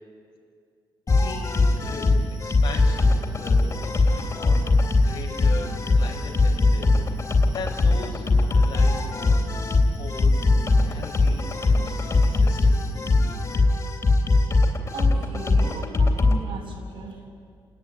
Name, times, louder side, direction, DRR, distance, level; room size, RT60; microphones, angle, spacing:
sound 1, 1.1-16.4, left 3 dB, 40° left, 3.2 m, -21 dB
voice 1, 1.2-9.5 10.0-10.4 10.8-12.8, left 4 dB, 85° left, -1 dB, 6.6 m, -39 dB
voice 2, 14.9-17.3, right 2 dB, 85° right, 1 dB, 7.7 m, -36 dB
29.0 x 19.5 x 9.8 m, 2.2 s
cardioid pair, 105°, 9 cm